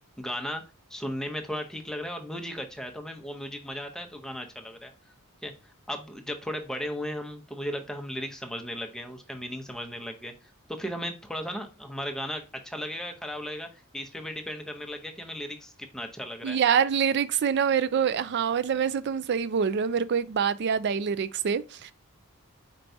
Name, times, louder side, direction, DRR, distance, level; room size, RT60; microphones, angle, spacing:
voice 1, 0.2-0.6 0.9-4.9 5.4-5.5 5.9-10.3 10.8-13.7 13.9-16.6, equal, 5° left, 0.6 m, -36 dB
voice 2, 16.4-21.9, right 7 dB, 50° right, 0.4 m, -25 dB
4.5 x 4.5 x 2.6 m
head